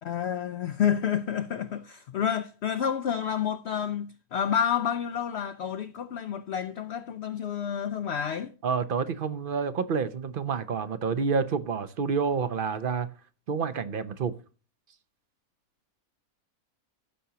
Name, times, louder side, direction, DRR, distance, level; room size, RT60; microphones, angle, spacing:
voice 1, 0.0-8.5, left 8 dB, 60° left, 0.7 m, -29 dB
voice 2, 8.6-13.1 13.5-14.3, right 5 dB, 50° right, 0.7 m, -28 dB
15.0 x 6.9 x 2.8 m
omnidirectional pair, 1.6 m